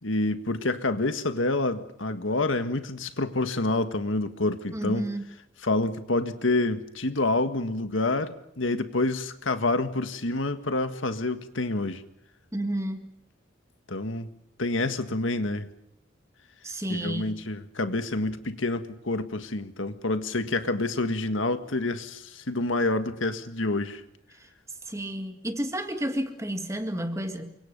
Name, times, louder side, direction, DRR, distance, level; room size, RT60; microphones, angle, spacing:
voice 1, 0.0-5.0 5.6-12.0 13.9-14.3 14.6-15.7 16.9-24.0, left 2 dB, 75° left, 1.7 m, -28 dB
voice 2, 4.7-5.2 12.5-13.1 16.6-17.4 24.9-27.6, right 1 dB, 15° right, 2.1 m, -31 dB
29.0 x 24.5 x 5.4 m
head